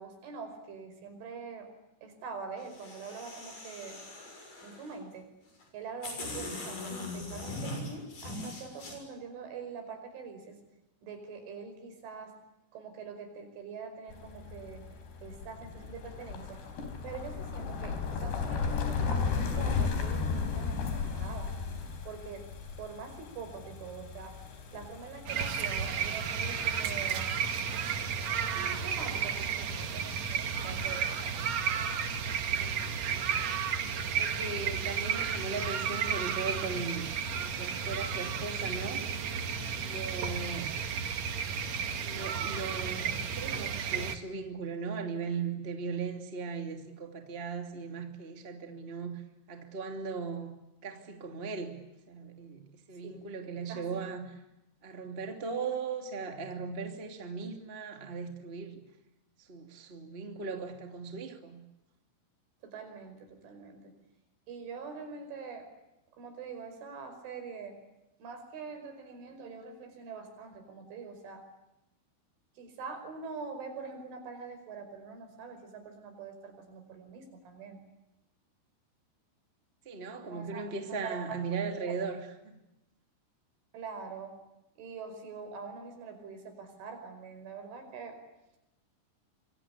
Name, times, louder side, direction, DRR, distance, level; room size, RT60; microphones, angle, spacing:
voice 1, 0.0-1.7 2.0-4.0 4.3-5.3 5.7-10.6 11.0-12.4 12.7-14.9 15.2-16.6 17.0-21.5 22.0-22.5 22.8-24.4 24.7-27.4 28.6-30.1 30.4-31.5 53.0-53.3 53.7-54.1 62.6-64.0 64.5-65.7 66.1-67.8 68.2-71.4 72.6-77.8 80.3-81.4 81.8-82.0 83.7-84.4 84.8-88.2, right 5 dB, 80° right, 7 dB, 7.6 m, -44 dB
sound 1, 2.6-4.9 5.6-5.7 6.0-8.9, left 2 dB, 45° left, 8.1 m, -41 dB
sound 2, 14.1-25.3, left 5 dB, 65° left, 5.9 m, -35 dB
sound 3, 25.3-44.2, right 7 dB, 55° right, 2.0 m, -33 dB
voice 2, 33.1-33.5 34.1-37.1 37.4-39.1 39.8-40.7 42.0-49.2 49.5-50.5 50.8-51.8 52.1-52.6 52.9-54.4 54.8-58.8 59.4-61.6 79.8-82.6, right 4 dB, 15° right, 5 dB, 2.1 m, -38 dB
27.0 x 23.5 x 8.5 m, 0.93 s
omnidirectional pair, 5.5 m